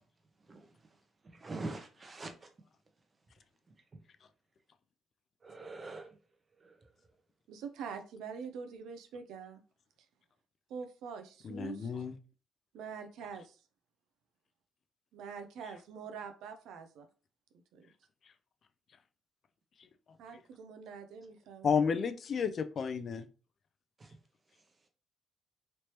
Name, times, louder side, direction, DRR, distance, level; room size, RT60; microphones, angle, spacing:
voice 1, 1.3-2.5 5.4-6.1 6.6-6.8 24.0-24.1, right 2 dB, 30° right, 0.8 m, -43 dB
voice 2, 7.5-9.6 10.7-12.0 12.7-13.6 15.1-17.1 17.7-17.9 20.2-21.9, right 6 dB, 85° right, 0.5 m, -45 dB
voice 3, 11.4-12.2 21.6-23.3, left 6 dB, 55° left, 0.3 m, -31 dB
3.2 x 2.9 x 2.9 m
cardioid pair, 90°, 0 cm